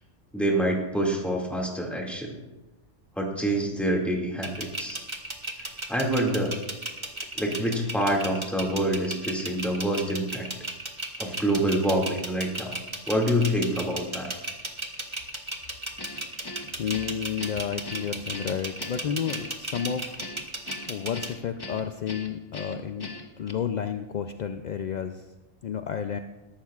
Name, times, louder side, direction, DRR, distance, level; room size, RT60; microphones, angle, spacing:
voice 1, 0.3-2.4 3.2-5.0 5.9-6.5 7.3-10.5 11.2-12.8 13.1-14.4, right 1 dB, ahead, -1 dB, 2.1 m, -26 dB
sound 1, 4.4-21.3, right 2 dB, 25° right, 1.2 m, -35 dB
Guitar, 16.0-23.5, left 2 dB, 25° left, 0.7 m, -41 dB
voice 2, 16.8-20.3 20.9-25.3 25.6-26.2, left 8 dB, 60° left, 7 dB, 0.4 m, -31 dB
21.5 x 11.5 x 2.4 m, 1.1 s
omnidirectional pair, 1.3 m